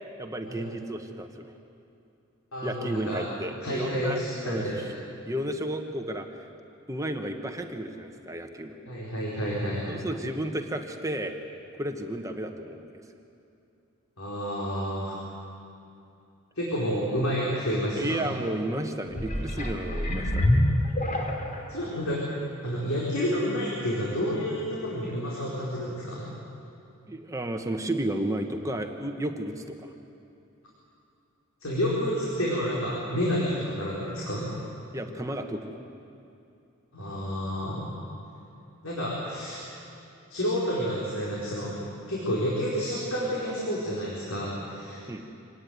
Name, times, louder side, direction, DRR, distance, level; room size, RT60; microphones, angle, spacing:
voice 1, 0.2-1.3 2.6-4.7 5.2-6.5 6.9-8.8 9.9-11.3 11.8-12.9 18.0-20.7 27.1-29.9 34.9-35.7 45.1-45.3, right 1 dB, 15° right, 4 dB, 1.3 m, -32 dB
voice 2, 2.5-3.2 3.6-4.8 8.9-9.8 14.2-15.2 16.6-18.3 21.7-22.2 22.6-26.3 31.6-34.5 36.9-37.9 38.8-39.6 40.3-41.7 42.1-45.0, equal, 75° left, -6 dB, 4.9 m, -29 dB
sound 1, 19.1-21.7 22.3-22.4, left 1 dB, 40° left, 3.0 m, -26 dB
25.5 x 18.5 x 9.4 m, 2.7 s
head